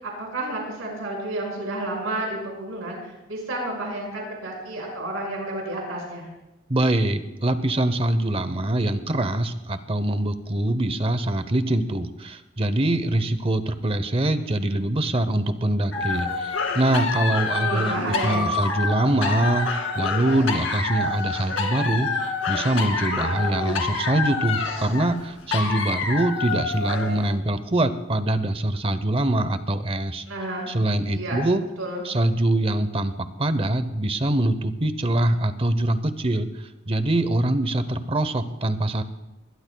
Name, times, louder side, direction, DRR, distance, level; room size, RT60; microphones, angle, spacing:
voice 1, 0.0-6.3 17.5-18.6 30.3-30.7 31.1-31.4 31.8-32.1, right 1 dB, 90° right, -1 dB, 5.7 m, -31 dB
voice 2, 6.7-19.7 19.9-30.2 30.7-31.6 32.0-39.0, right 1 dB, 30° right, 11 dB, 0.8 m, -24 dB
sound 1, 15.9-27.3, left 4 dB, 80° left, 2.3 m, -27 dB
21.0 x 20.5 x 2.3 m, 0.97 s
head